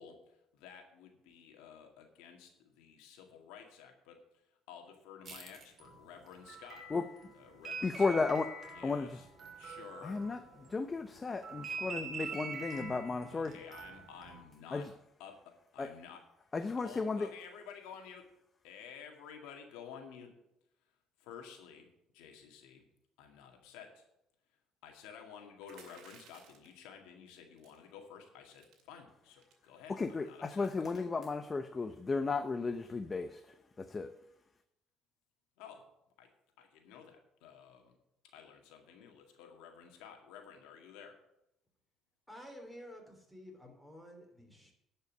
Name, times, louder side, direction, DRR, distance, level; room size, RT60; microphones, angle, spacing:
voice 1, 0.0-6.9 7.3-8.2 8.7-9.2 9.6-10.2 13.3-14.9 15.2-15.4 15.7-16.2 16.6-18.3 18.6-20.3 21.2-21.9 22.1-22.8 23.2-24.1 24.8-31.0 35.6-35.8 36.2-36.3 36.6-38.0 38.3-41.2, left 7 dB, 90° left, 3 dB, 2.0 m, -52 dB
sound 1, 5.3-10.8 11.1-14.4, right 4 dB, 40° right, 2.9 m, -44 dB
voice 2, 7.8-8.5 8.8-9.2 10.0-10.4 10.7-13.5 14.7-14.9 15.8-15.9 16.5-17.3 29.9-34.2, left 4 dB, 25° left, 9 dB, 0.7 m, -34 dB
sound 2, 25.6-26.8 27.6-27.9 28.3-28.4 28.6-28.8 29.4-29.7, right 6 dB, 75° right, 2.4 m, -58 dB
voice 3, 42.3-44.7, equal, ahead, 1 dB, 3.4 m, -51 dB
10.5 x 5.6 x 8.1 m, 0.82 s
cardioid pair, 95°, 0 cm